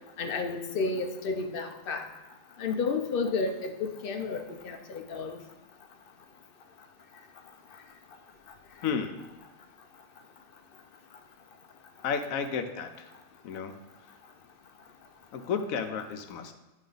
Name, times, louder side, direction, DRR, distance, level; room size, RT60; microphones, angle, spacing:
voice 1, 0.2-2.0 2.6-5.4, left 4 dB, 60° left, 4 dB, 0.6 m, -31 dB
voice 2, 8.8-9.4 12.0-13.1 13.4-13.7 15.3-16.5, left 6 dB, 80° left, 7 dB, 1.0 m, -32 dB
9.1 x 3.2 x 3.9 m, 1.1 s
omnidirectional pair, 1.4 m